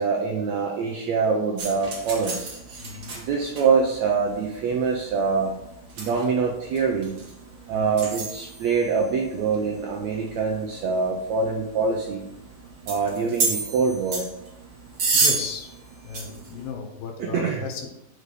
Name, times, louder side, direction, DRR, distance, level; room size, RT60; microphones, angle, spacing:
voice 1, 0.0-2.4 3.3-5.5 6.0-7.1 7.7-12.2 12.9-14.2 17.2-17.6, right 5 dB, 75° right, 0 dB, 1.6 m, -24 dB
sound 1, 1.6-16.7, right 4 dB, 45° right, 2.0 m, -32 dB
voice 2, 2.8-3.2 7.7-8.1 15.1-15.7 16.0-17.9, left 5 dB, 80° left, 4 dB, 2.8 m, -35 dB
6.8 x 5.2 x 4.9 m, 0.84 s
omnidirectional pair, 4.1 m